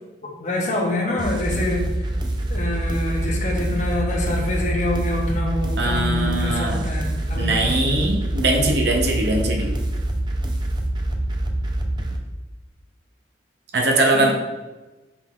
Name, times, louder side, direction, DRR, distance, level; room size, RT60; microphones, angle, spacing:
voice 1, 0.2-1.9 2.5-7.8 14.1-14.3, left 1 dB, 40° left, 1 dB, 0.6 m, -26 dB
sound 1, 1.2-12.2, right 1 dB, 25° right, 0.3 m, -25 dB
voice 2, 5.8-6.9 7.4-9.7 13.7-14.3, right 2 dB, 65° right, 2 dB, 0.6 m, -21 dB
5.1 x 3.5 x 2.3 m, 1.1 s
head